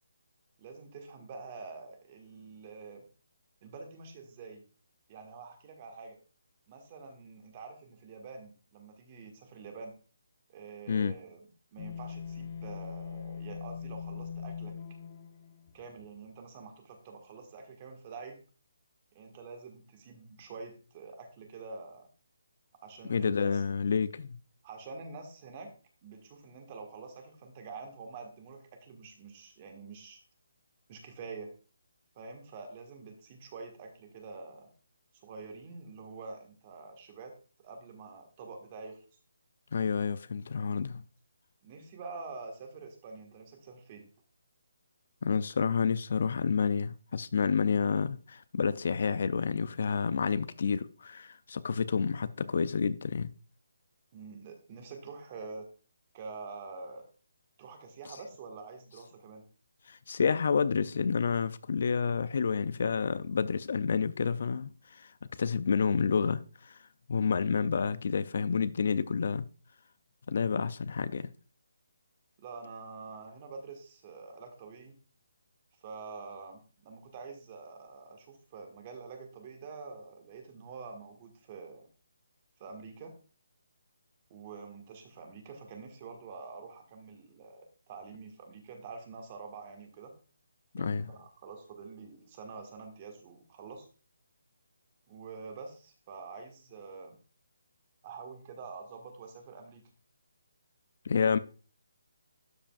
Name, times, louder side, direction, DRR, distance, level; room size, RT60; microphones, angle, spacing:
voice 1, 0.6-3.0 3.6-4.6 5.1-6.2 6.7-10.0 10.5-14.7 15.7-18.4 19.1-22.1 22.8-23.6 24.6-25.7 26.0-30.2 30.9-31.5 32.1-34.7 35.1-39.0 41.6-44.1 54.1-55.7 56.1-57.1 57.6-59.4 72.4-75.0 75.8-81.8 82.6-83.1 84.3-90.1 90.8-93.9 95.1-97.2 98.0-99.8, right 4 dB, 25° right, 1.5 m, -46 dB
sound 1, 11.8-16.0, left 7 dB, 35° left, 0.8 m, -41 dB
voice 2, 23.1-24.4 39.7-41.0 45.2-53.3 59.9-65.1 65.4-66.8 67.1-69.5 70.3-71.3 90.7-91.1 101.1-101.4, left 5 dB, 50° left, 0.4 m, -29 dB
12.5 x 5.1 x 2.4 m
hypercardioid pair, 165°, 0 cm